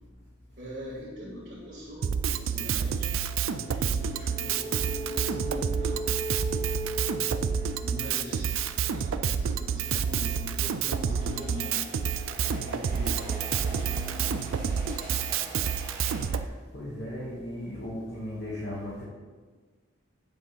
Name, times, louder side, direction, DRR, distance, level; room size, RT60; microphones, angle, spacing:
voice 1, 0.6-3.1 3.6-6.0 6.6-6.8 7.8-8.5 8.9-11.8 12.6-13.9, equal, 40° right, -10 dB, 2.0 m, -42 dB
Drum kit, 2.0-16.4, right 7 dB, 80° right, 0.4 m, -29 dB
sound 1, 2.2-15.0, equal, 35° left, 0.8 m, -41 dB
reverberacion-drum, 10.7-16.2, right 2 dB, 20° right, 2.0 m, -44 dB
voice 2, 16.7-19.0, left 1 dB, 55° left, -6 dB, 1.3 m, -36 dB
8.7 x 3.8 x 5.6 m, 1.4 s
head